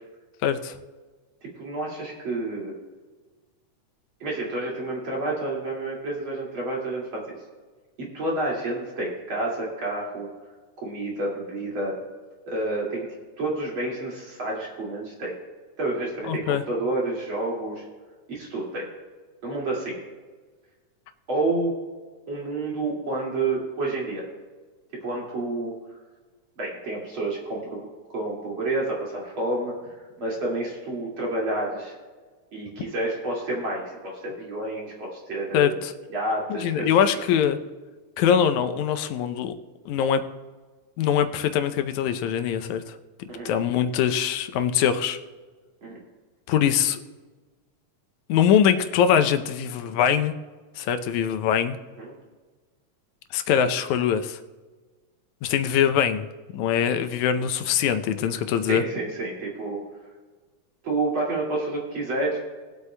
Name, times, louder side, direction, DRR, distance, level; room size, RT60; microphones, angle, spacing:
voice 1, 0.4-0.8 16.3-16.6 35.5-35.9 36.5-37.6 38.2-39.5 39.9-40.2 41.0-45.2 46.5-47.0 48.3-50.3 50.8-51.8 53.3-54.4 55.4-56.3 56.5-58.8, left 8 dB, 80° left, 9 dB, 2.0 m, -23 dB
voice 2, 1.4-2.7 4.2-7.4 8.0-10.3 10.8-12.0 12.5-13.1 13.4-15.3 15.8-17.8 18.3-18.9 19.4-20.0 21.3-21.7 22.3-24.3 25.0-25.7 26.6-32.0 32.5-35.8 36.1-36.9 43.3-43.5 45.8-46.0 52.0-52.1 58.7-59.8 60.8-62.4, right 2 dB, 45° right, -4 dB, 2.9 m, -29 dB
22.0 x 8.2 x 2.2 m, 1.4 s
omnidirectional pair, 3.4 m